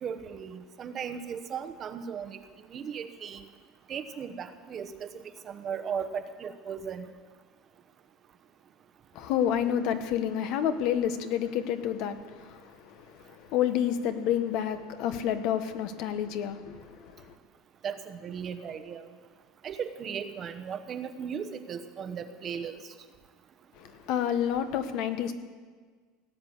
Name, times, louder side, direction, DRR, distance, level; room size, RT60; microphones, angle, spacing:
voice 1, 0.0-2.4 2.7-3.4 3.9-7.1 17.8-19.1 19.6-22.8, right 7 dB, 30° right, 1.0 m, -37 dB
voice 2, 9.1-17.3 23.7-25.3, left 9 dB, 60° left, 1.2 m, -29 dB
18.0 x 8.6 x 8.0 m
supercardioid pair, 140°, 0 cm